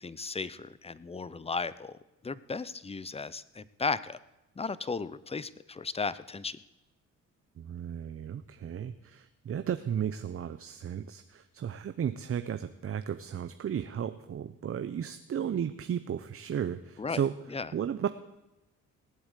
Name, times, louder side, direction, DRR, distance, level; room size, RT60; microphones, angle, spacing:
voice 1, 0.0-2.0 2.2-4.2 4.6-6.6 17.0-17.2 17.5-17.7, left 4 dB, 20° left, 17 dB, 0.7 m, -35 dB
voice 2, 7.6-17.4 17.7-18.1, right 8 dB, 45° right, 10 dB, 0.7 m, -34 dB
18.5 x 8.0 x 8.2 m, 0.98 s
cardioid pair, 85°, 31 cm